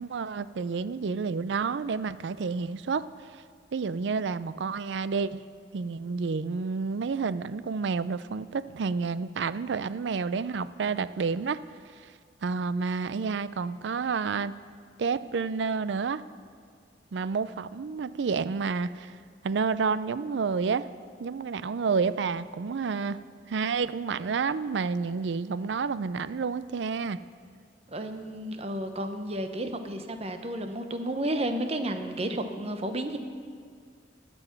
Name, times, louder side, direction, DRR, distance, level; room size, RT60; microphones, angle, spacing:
voice 1, 0.0-3.1 3.7-5.4 5.7-11.6 12.4-14.5 15.0-16.2 17.1-19.1 19.4-20.9 21.2-23.2 23.5-27.2, right 5 dB, 75° right, 15 dB, 0.4 m, -29 dB
voice 2, 27.9-33.2, right 1 dB, 35° right, 7 dB, 0.9 m, -32 dB
18.5 x 7.0 x 5.9 m, 2.3 s
head